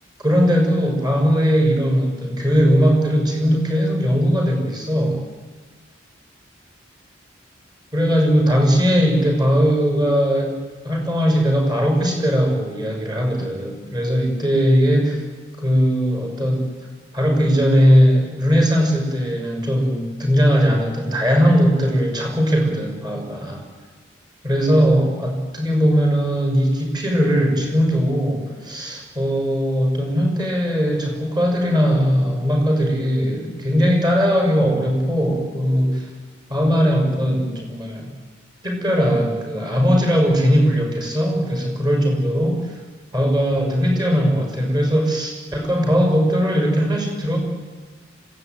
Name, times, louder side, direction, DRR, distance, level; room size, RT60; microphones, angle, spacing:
voice 1, 0.2-5.2 7.9-10.5 10.8-15.2 15.6-16.7 17.1-23.6 24.4-36.1 36.5-38.1 38.6-42.6 43.1-47.4, equal, 20° right, 2 dB, 6.2 m, -19 dB
26.0 x 17.0 x 9.4 m, 1.4 s
head